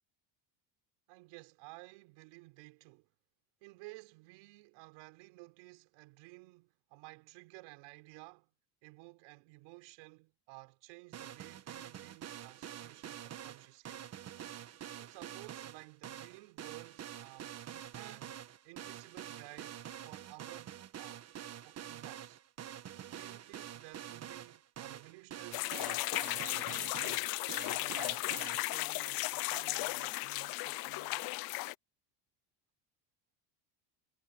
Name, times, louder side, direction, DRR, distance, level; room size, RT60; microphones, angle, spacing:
voice 1, 1.1-3.1 3.6-8.5 8.8-14.0 15.0-18.4 18.6-21.3 21.6-22.4 23.1-27.4 27.6-31.3, right 26 dB, 75° right, 5.5 m, -54 dB
sound 1, 11.1-28.6, right 10 dB, 30° right, 1.3 m, -47 dB
sound 2, 25.5-31.7, left 22 dB, 50° left, 0.5 m, -35 dB
cardioid pair, 150°, 49 cm